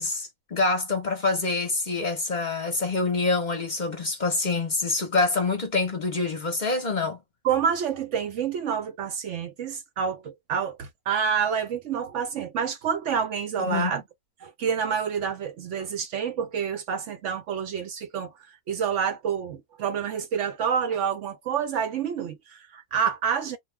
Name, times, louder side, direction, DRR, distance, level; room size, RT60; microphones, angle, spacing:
voice 1, 0.0-7.2 13.7-13.9, left 3 dB, 40° left, 0.7 m, -26 dB
voice 2, 7.4-14.0 14.4-23.6, right 7 dB, 65° right, 0.8 m, -28 dB
2.4 x 2.3 x 3.1 m
omnidirectional pair, 1.6 m